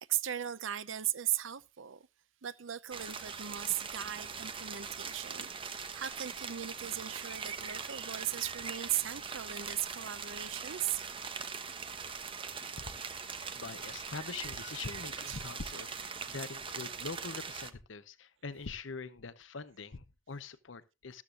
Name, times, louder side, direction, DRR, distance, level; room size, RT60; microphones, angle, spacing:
voice 1, 0.1-2.1 2.4-11.0 15.3-15.4, right 12 dB, 80° right, 0.7 m, -37 dB
sound 1, 2.9-17.7, right 5 dB, 25° right, 1.0 m, -41 dB
voice 2, 12.8-21.2, left 4 dB, 75° left, 0.8 m, -44 dB
13.5 x 13.5 x 2.5 m
head